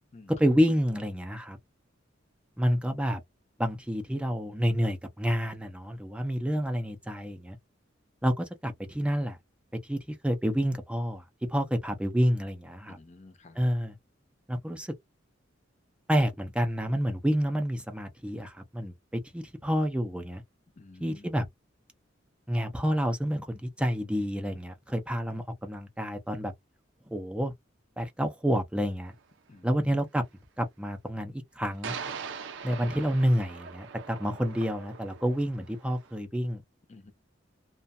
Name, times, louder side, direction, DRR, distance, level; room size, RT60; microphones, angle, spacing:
voice 1, 0.4-1.6 2.6-3.2 3.6-7.6 8.2-9.4 9.9-11.2 11.5-13.0 13.6-13.9 14.5-14.9 16.1-18.9 19.3-20.4 21.0-21.5 22.5-26.5 27.1-27.5 28.0-29.1 29.6-30.2 30.6-32.0 32.6-36.6, equal, 5° right, 0.4 m, -28 dB
voice 2, 13.0-13.6 20.7-21.3 29.5-30.0 36.9-37.1, left 2 dB, 35° left, 0.6 m, -52 dB
sound 1, 29.1-29.2 31.8-36.2, right 6 dB, 70° right, 0.5 m, -41 dB
2.5 x 2.2 x 2.5 m
head